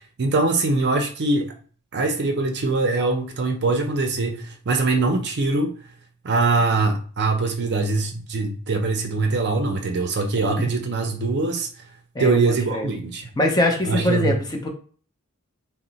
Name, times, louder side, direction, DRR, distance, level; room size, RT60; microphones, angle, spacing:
voice 1, 0.2-1.5 1.9-5.7 6.2-11.7 12.2-13.3 13.8-14.4, right 3 dB, 50° right, 0.5 m, -22 dB
voice 2, 13.4-14.7, left 1 dB, 20° left, 0.5 m, -22 dB
2.9 x 2.0 x 3.9 m
head